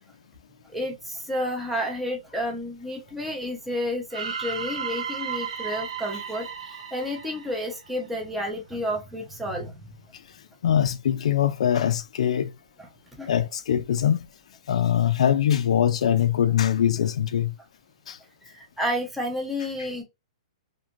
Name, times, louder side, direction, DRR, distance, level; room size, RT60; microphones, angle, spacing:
voice 1, 0.7-9.7 13.2-13.3 18.5-20.0, equal, 5° right, 0.7 m, -31 dB
sound 1, 4.1-8.2, right 7 dB, 75° right, 0.6 m, -34 dB
voice 2, 10.6-12.5 13.3-14.3 14.7-17.5 18.1-18.2, left 9 dB, 75° left, 0.3 m, -22 dB
2.5 x 2.4 x 2.9 m
hypercardioid pair, 160°, 4 cm